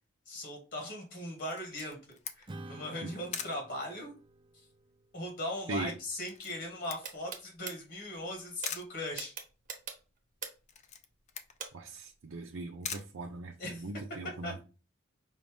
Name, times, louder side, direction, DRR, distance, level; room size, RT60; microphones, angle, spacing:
voice 1, 0.3-4.1 5.1-9.3 13.6-13.8 14.4-14.6, left 1 dB, 60° left, 1.5 m, -39 dB
Camera, 1.5-14.0, left 7 dB, 35° left, 0.5 m, -46 dB
Acoustic guitar / Strum, 2.5-7.3, right 2 dB, 25° right, 0.5 m, -52 dB
sound 1, 7.0-7.7 8.6-8.7 9.2-10.7 11.6-11.7, right 6 dB, 40° right, 1.0 m, -40 dB
voice 2, 11.7-14.6, right 2 dB, 75° right, 0.6 m, -40 dB
5.3 x 2.6 x 3.5 m
head